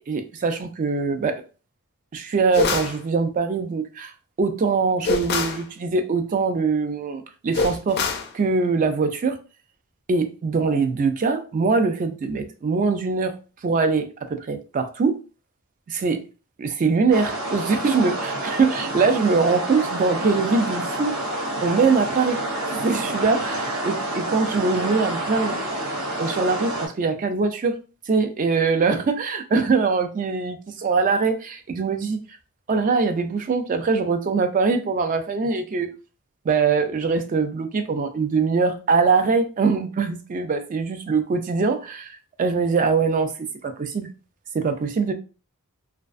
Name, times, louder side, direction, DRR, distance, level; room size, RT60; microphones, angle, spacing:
voice 1, 0.1-1.3 2.1-4.1 4.4-8.0 8.3-9.4 10.1-13.3 13.6-15.1 15.9-16.2 16.6-21.1 21.6-22.4 22.7-25.6 26.2-27.8 28.1-32.2 32.7-35.9 36.5-43.3 43.6-44.1 44.5-45.1, right 4 dB, 35° right, 0.3 m, -22 dB
sound 1, 2.5-3.0 5.0-5.6 7.5-8.3, left 4 dB, 45° left, 0.4 m, -24 dB
sound 2, 17.1-26.9, right 1 dB, 75° right, 0.7 m, -28 dB
2.3 x 2.2 x 2.4 m
head